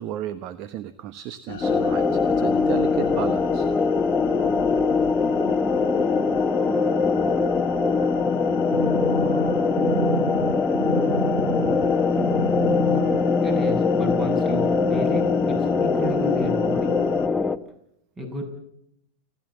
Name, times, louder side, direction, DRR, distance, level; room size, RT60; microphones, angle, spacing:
voice 1, 0.0-3.7, right 11 dB, 50° right, 14 dB, 1.0 m, -33 dB
sound 1, 1.5-17.3, left 10 dB, 65° left, 1.1 m, -35 dB
sound 2, 1.6-17.6, left 4 dB, 15° left, 1.1 m, -22 dB
sound 3, 8.7-11.9 12.2-13.2 13.7-13.8, right 3 dB, 70° right, 3.2 m, -28 dB
voice 2, 13.4-17.0 18.2-18.4, right 1 dB, 30° right, 4 dB, 7.7 m, -32 dB
30.0 x 12.0 x 7.4 m, 0.77 s
hypercardioid pair, 95°, 0 cm